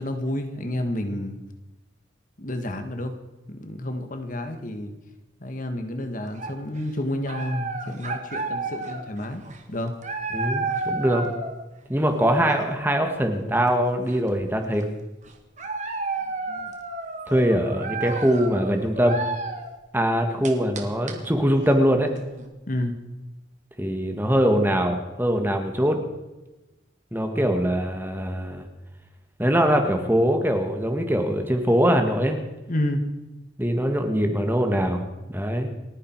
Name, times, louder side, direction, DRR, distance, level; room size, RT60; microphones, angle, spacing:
voice 1, 0.0-1.4 2.4-3.1 3.5-4.9 5.4-9.4 9.7-9.9 22.7-23.0 32.7-33.0, left 1 dB, 45° left, 6 dB, 1.7 m, -29 dB
sound 1, 6.2-6.8 7.3-11.5 11.9-12.9 13.7-13.8 14.0-14.8 15.2-19.7 20.2-22.5, right 3 dB, 40° right, 1.8 m, -32 dB
voice 2, 10.3-11.3 11.9-14.8 17.3-19.2 19.9-22.1 23.8-26.0 27.1-28.6 29.4-32.4 33.6-35.0 35.3-35.7, equal, 10° right, 5 dB, 1.6 m, -22 dB
29.5 x 9.9 x 4.7 m, 1.1 s
head